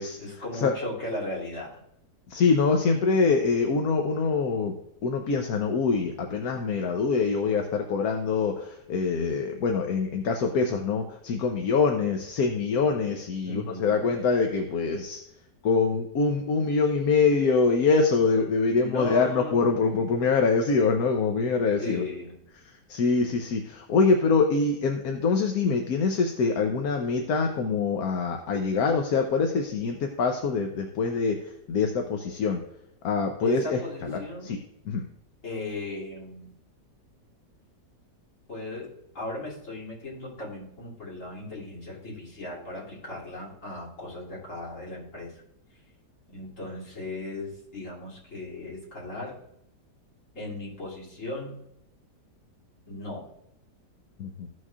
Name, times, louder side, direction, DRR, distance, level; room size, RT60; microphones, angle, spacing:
voice 1, 0.2-1.8 13.4-14.1 18.7-20.2 21.8-22.4 33.4-34.5 35.4-36.5 38.5-38.9 39.1-45.3 46.3-49.4 50.3-51.6 52.9-53.2, left 2 dB, 45° left, -6 dB, 3.2 m, -37 dB
voice 2, 2.3-4.7 5.0-15.2 15.6-22.0 22.9-31.4 31.7-32.6 33.0-34.6 34.9-35.0 54.2-54.5, left 4 dB, 65° left, 4 dB, 1.2 m, -24 dB
15.0 x 6.3 x 2.4 m, 0.81 s
omnidirectional pair, 1.8 m